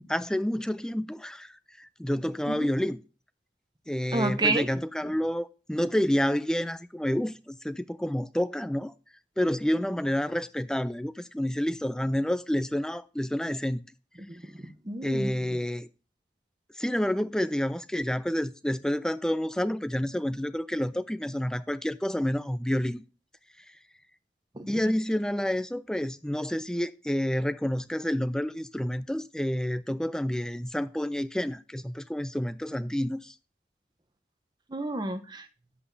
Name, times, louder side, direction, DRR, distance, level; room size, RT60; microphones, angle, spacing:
voice 1, 0.1-3.0 3.9-8.9 9.4-13.8 15.0-15.9 16.7-23.0 24.7-33.3, equal, 5° left, 0.3 m, -29 dB
voice 2, 4.1-4.6 14.6-15.3 24.6-24.8 34.7-35.4, right 2 dB, 25° right, 0.8 m, -29 dB
10.0 x 7.7 x 2.7 m
head